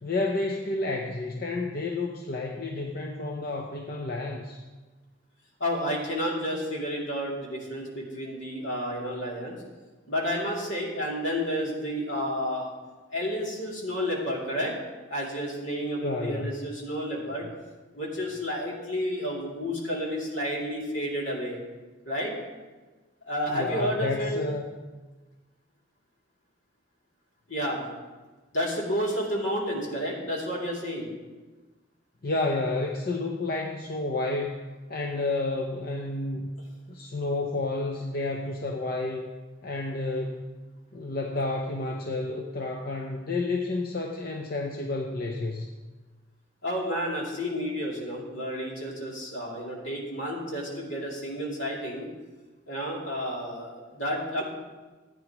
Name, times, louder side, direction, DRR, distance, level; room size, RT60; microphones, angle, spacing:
voice 1, 0.0-4.6 16.0-16.5 23.5-24.7 32.2-36.5 36.9-39.3 39.6-40.4 40.9-45.7, left 2 dB, 50° left, 2 dB, 0.7 m, -30 dB
voice 2, 5.6-9.6 10.1-12.7 13.1-14.8 15.1-17.5 17.9-21.6 22.0-22.3 23.2-24.4 27.5-27.8 28.5-31.1 46.6-52.1 52.7-54.4, equal, 70° left, -3 dB, 2.9 m, -31 dB
15.0 x 9.2 x 3.0 m, 1.3 s
head